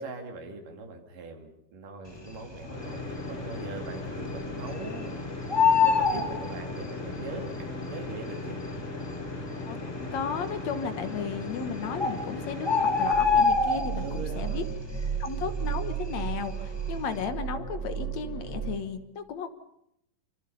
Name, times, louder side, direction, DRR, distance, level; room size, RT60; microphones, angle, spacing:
voice 1, 0.0-5.2 5.6-8.6 14.0-14.7, right 3 dB, 75° right, 3 dB, 4.1 m, -41 dB
sound 1, 2.5-13.2, left 2 dB, 40° left, 5.3 m, -37 dB
Bird, 2.6-3.2 3.5-3.6 3.9-5.1 5.3-7.2 8.0-8.1 8.7-8.8 9.0-9.2 9.8-10.3 11.2-11.3 11.7-11.8 12.0-14.3 14.6-14.9 15.3-16.6 17.0-17.2, left 5 dB, 15° left, 0.8 m, -24 dB
voice 2, 10.1-14.6 15.2-19.5, left 6 dB, 60° left, 9 dB, 2.3 m, -34 dB
sound 2, 13.1-18.8, right 8 dB, 20° right, 2.8 m, -34 dB
26.0 x 25.5 x 5.6 m, 0.78 s
omnidirectional pair, 3.9 m